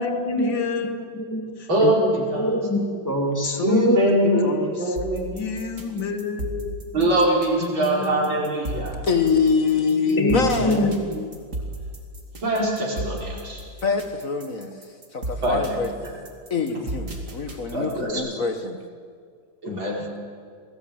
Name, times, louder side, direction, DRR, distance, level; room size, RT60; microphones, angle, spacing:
voice 1, 0.0-1.2 1.6-1.9 3.4-5.0 5.3-7.1 7.6-8.4 10.2-11.0 19.7-19.8, left 4 dB, 75° left, 7 dB, 2.4 m, -30 dB
voice 2, 1.1-1.5 2.3-4.0 4.3-4.4 9.9-11.3, equal, 10° left, 2 dB, 2.8 m, -24 dB
voice 3, 1.7-2.5 3.6-5.4 6.9-9.0 12.4-13.6 15.4-15.8 16.0-16.1 17.7-18.2 19.6-20.0, right 1 dB, 85° right, -3 dB, 6.3 m, -23 dB
sound 1, 5.0-18.1, right 1 dB, 40° right, 3.2 m, -34 dB
voice 4, 9.0-11.0 13.8-14.7 15.1-15.9 16.5-18.8, left 5 dB, 45° left, 7 dB, 1.7 m, -24 dB
28.0 x 19.0 x 8.8 m, 2.1 s
omnidirectional pair, 2.1 m